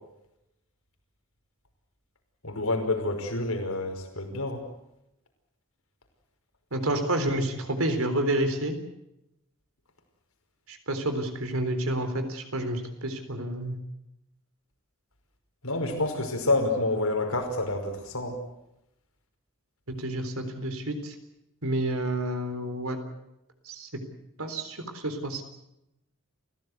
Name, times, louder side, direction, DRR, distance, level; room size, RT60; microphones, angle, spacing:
voice 1, 2.4-4.6 15.6-18.4, left 2 dB, 80° left, 5 dB, 5.4 m, -28 dB
voice 2, 6.7-8.7 10.7-13.8 19.9-21.1 21.6-23.0 23.7-23.9 24.4-25.4, right 1 dB, 75° right, 8 dB, 3.9 m, -29 dB
29.5 x 16.0 x 8.2 m, 0.86 s
head